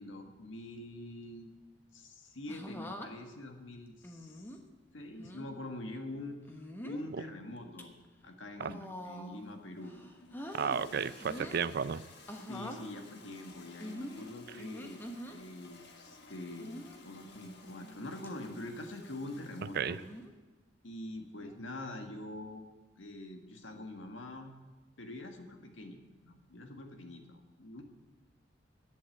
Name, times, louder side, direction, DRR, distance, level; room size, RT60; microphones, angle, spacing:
voice 1, 0.0-1.5 1.9-4.4 4.9-6.4 6.8-7.9 8.2-9.9 11.1-11.4 12.5-20.0 20.8-22.6 23.0-24.5 25.0-27.8, left 1 dB, 85° left, 5 dB, 1.6 m, -45 dB
sound 1, 2.5-3.1 4.0-4.6 5.2-5.5 6.4-7.0 7.6-7.8 8.6-9.5 9.8-10.8 11.2-11.7 12.3-12.8 13.8-15.4 16.6-17.0 17.6-18.0 18.2-18.3 19.9-20.3 21.4-21.7, equal, 10° left, 1.1 m, -45 dB
Toilet flush, 9.2-20.3, left 3 dB, 60° left, 1.6 m, -56 dB
voice 2, 10.5-12.0 19.7-20.0, right 6 dB, 55° right, 16 dB, 0.5 m, -33 dB
11.0 x 8.4 x 7.8 m, 1.2 s
head